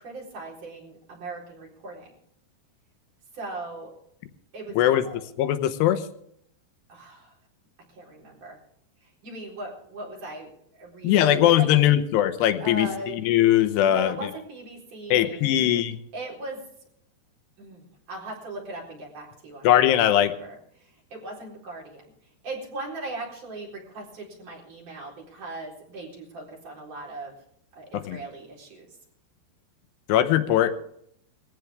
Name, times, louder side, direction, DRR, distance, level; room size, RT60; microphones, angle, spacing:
voice 1, 0.0-2.1 3.3-3.9 4.5-5.2 6.9-7.3 7.9-8.6 9.0-12.0 12.6-13.3 13.8-15.6 16.1-16.6 17.6-19.8 20.2-22.1 22.4-27.4 27.7-28.9, right 2 dB, 45° right, 1 dB, 5.4 m, -39 dB
voice 2, 5.4-6.0 11.0-12.9 13.2-14.2 15.1-16.0 19.6-20.3 27.9-28.2 30.1-30.7, left 12 dB, 75° left, 10 dB, 3.0 m, -20 dB
21.0 x 15.5 x 3.6 m, 0.70 s
omnidirectional pair, 5.0 m